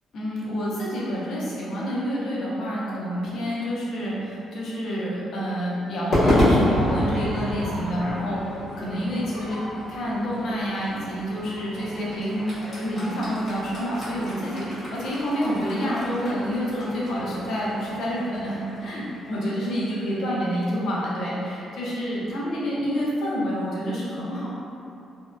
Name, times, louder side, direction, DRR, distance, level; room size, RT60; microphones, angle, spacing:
voice 1, 0.1-9.6 9.9-24.5, equal, 65° left, -6 dB, 0.6 m, -28 dB
Crowd / Fireworks, 6.1-20.5, left 1 dB, 50° left, 1.1 m, -29 dB
2.6 x 2.1 x 2.3 m, 2.8 s
cardioid pair, 90°, 0 cm